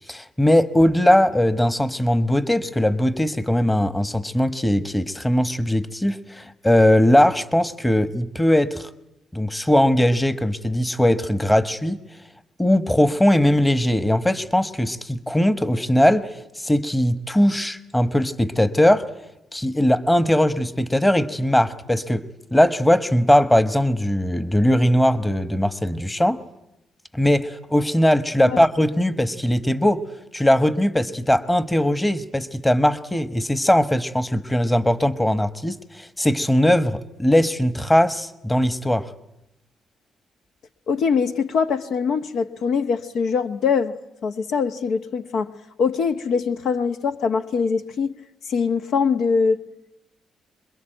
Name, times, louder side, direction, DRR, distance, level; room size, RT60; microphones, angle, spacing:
voice 1, 0.1-8.9 9.3-12.0 12.6-19.1 19.5-22.2 22.5-26.4 27.1-30.1 30.3-39.1, left 1 dB, 10° left, 1.3 m, -20 dB
voice 2, 40.9-44.0 44.2-48.1 48.5-49.6, left 5 dB, 70° left, 1.2 m, -23 dB
26.5 x 22.5 x 9.2 m
cardioid pair, 90°, 0 cm